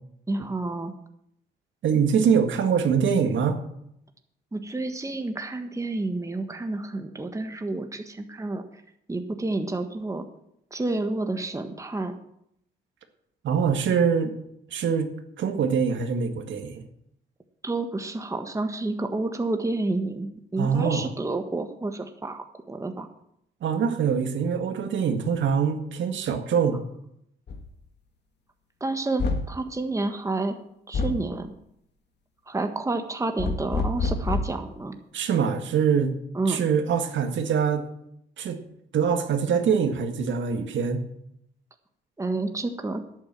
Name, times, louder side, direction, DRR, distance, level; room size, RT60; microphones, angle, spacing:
voice 1, 0.3-0.9 4.5-8.6 9.1-10.3 10.7-12.1 17.6-23.1 28.8-30.5 30.9-31.5 32.5-35.0 36.3-36.6 42.2-43.0, right 2 dB, 15° right, 6 dB, 1.4 m, -29 dB
voice 2, 1.8-3.6 13.4-14.3 14.7-15.1 15.4-16.9 20.6-21.1 23.6-26.8 35.1-36.2 36.5-37.9 38.4-38.6 38.9-41.0, right 6 dB, 70° right, 6 dB, 1.9 m, -24 dB
sound 1, 27.5-27.7 29.2-29.6 30.9-31.3 33.4-34.6, left 3 dB, 60° left, 1.8 m, -27 dB
11.0 x 9.0 x 7.6 m, 0.75 s
cardioid pair, 90°, 20 cm